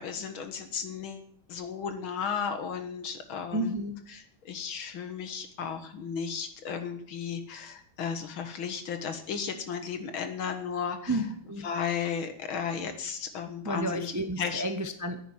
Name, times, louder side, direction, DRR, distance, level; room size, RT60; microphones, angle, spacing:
voice 1, 0.0-3.7 4.5-11.1 11.6-14.1 14.4-14.6, left 6 dB, 85° left, 7 dB, 2.3 m, -34 dB
voice 2, 3.5-4.0 11.1-11.7 13.6-15.2, right 1 dB, 20° right, 8 dB, 0.5 m, -31 dB
10.5 x 9.4 x 9.3 m, 0.64 s
omnidirectional pair, 2.2 m